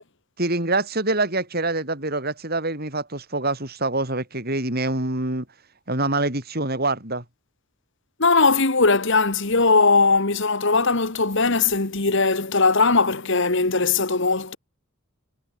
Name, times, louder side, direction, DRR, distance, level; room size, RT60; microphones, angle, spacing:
voice 1, 0.4-5.4 5.9-7.2, right 2 dB, 45° right, 5.7 m, -25 dB
voice 2, 8.2-14.6, left 3 dB, 55° left, 1.9 m, -19 dB
head